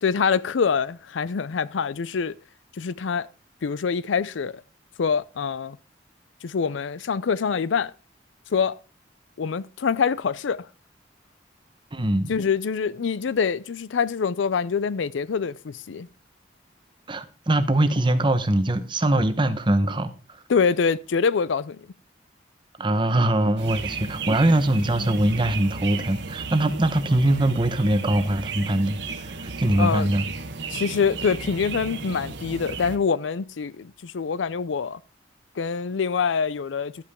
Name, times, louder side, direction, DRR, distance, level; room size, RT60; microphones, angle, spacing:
voice 1, 0.0-2.3 2.7-3.3 3.6-4.6 5.0-5.8 6.4-7.9 8.5-8.8 9.4-10.7 12.3-16.1 20.5-21.9 29.8-30.1 30.7-35.0 35.6-37.0, left 6 dB, 90° left, 0.5 m, -25 dB
voice 2, 11.9-12.3 17.1-20.4 22.8-29.0 29.3-30.2, right 1 dB, 25° right, 0.9 m, -22 dB
sound 1, 23.6-33.0, right 4 dB, 70° right, 1.2 m, -34 dB
11.5 x 8.4 x 3.6 m
head